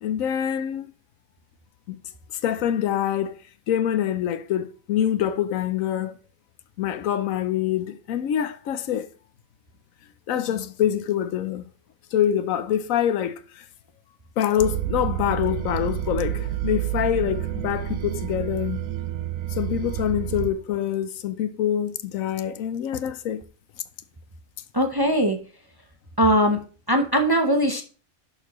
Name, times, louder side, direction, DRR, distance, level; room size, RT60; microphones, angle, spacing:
voice 1, 0.0-0.9 1.9-2.0 2.4-3.4 3.7-6.1 6.8-9.1 10.3-11.7 12.1-13.6 14.4-18.8 19.5-23.4, left 10 dB, 80° left, 1.1 m, -25 dB
sound 1, 14.6-20.5, right 12 dB, 85° right, 1.1 m, -29 dB
voice 2, 24.7-25.4 26.2-26.6 26.9-27.8, equal, 20° right, 0.6 m, -20 dB
11.0 x 6.6 x 3.0 m
omnidirectional pair, 1.4 m